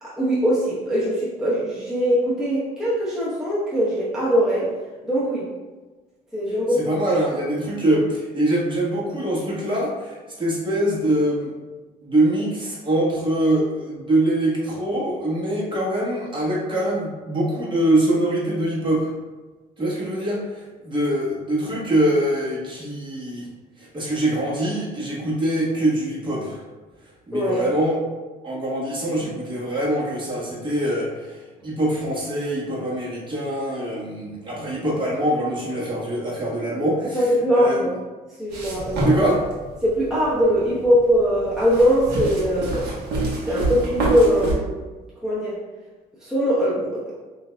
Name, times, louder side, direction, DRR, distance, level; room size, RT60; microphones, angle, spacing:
voice 1, 0.0-4.7 5.0-5.5 6.3-6.9 27.3-27.6 37.1-37.9 38.4-39.1 39.8-42.9 43.5-44.7 45.2-45.6 46.2-47.0, equal, 5° right, -9 dB, 1.0 m, -21 dB
voice 2, 6.7-11.5 12.0-19.1 19.8-23.5 23.8-26.6 27.3-28.0 28.4-37.7 39.0-39.4, right 1 dB, 30° right, -6 dB, 1.3 m, -23 dB
sound 1, 38.5-44.5, right 2 dB, 85° right, 1.1 m, -27 dB
5.6 x 2.7 x 2.2 m, 1.3 s
cardioid pair, 110°, 17 cm